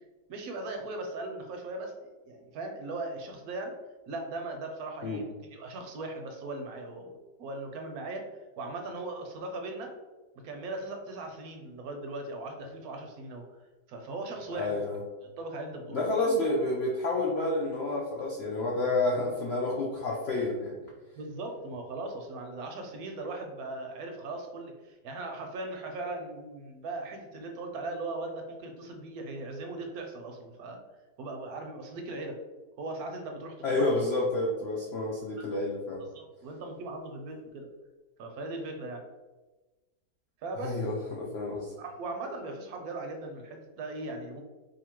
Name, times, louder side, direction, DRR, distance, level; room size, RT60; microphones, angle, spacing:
voice 1, 0.3-3.8 4.1-9.9 10.4-13.5 13.9-15.0 15.4-16.1 21.1-30.8 31.2-32.4 32.8-34.0 35.4-35.6 36.1-37.7 38.2-39.0 40.4-40.9 41.8-44.4, right 2 dB, 70° right, 3 dB, 1.0 m, -39 dB
voice 2, 14.5-15.0 15.9-20.9 33.6-36.0 40.6-41.7, left 2 dB, 75° left, -3 dB, 0.5 m, -29 dB
2.8 x 2.6 x 4.3 m, 1.2 s
omnidirectional pair, 1.8 m